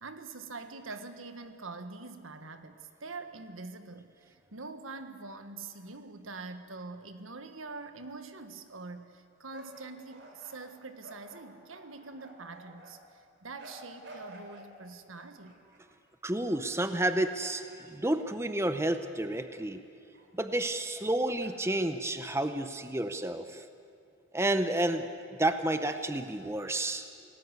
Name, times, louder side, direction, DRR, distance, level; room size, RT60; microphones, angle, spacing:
voice 1, 0.0-15.6, right 3 dB, 80° right, 8 dB, 1.6 m, -44 dB
sound 1, 9.5-12.9 13.6-14.7 15.1-16.0 16.6-17.1 17.4-19.0 19.5-19.6 20.1-20.3 21.4-21.9, right 1 dB, 55° right, 3.9 m, -52 dB
voice 2, 16.2-19.8 20.3-23.6 24.3-25.1 25.4-27.1, right 1 dB, 15° right, 9 dB, 0.8 m, -30 dB
28.0 x 18.0 x 8.2 m, 2.4 s
head